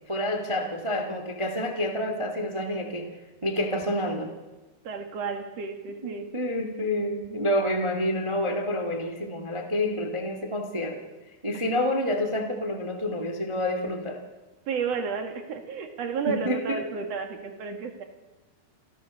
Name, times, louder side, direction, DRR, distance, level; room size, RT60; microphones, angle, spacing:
voice 1, 0.1-3.1 3.4-4.3 6.0-11.0 11.4-14.2 16.2-16.8, left 1 dB, 25° right, 3 dB, 0.6 m, -28 dB
voice 2, 4.8-6.3 14.7-18.0, right 5 dB, 45° right, 5 dB, 2.6 m, -32 dB
28.5 x 15.5 x 6.5 m, 1.2 s
omnidirectional pair, 5.0 m